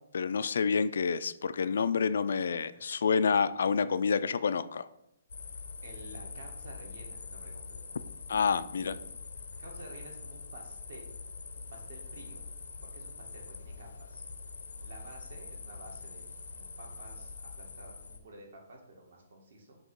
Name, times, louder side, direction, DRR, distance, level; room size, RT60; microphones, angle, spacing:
voice 1, 0.1-4.9 8.3-9.0, left 5 dB, 60° left, 14 dB, 0.3 m, -28 dB
voice 2, 2.7-3.0 5.8-8.0 9.6-11.2 11.5-12.5 12.8-14.3 14.8-16.2 16.5-19.9, right 1 dB, 55° right, 0 dB, 1.7 m, -51 dB
sound 1, 5.3-18.2, left 4 dB, 85° left, 0.7 m, -44 dB
6.2 x 2.9 x 5.3 m, 0.81 s
hypercardioid pair, 175°, 0 cm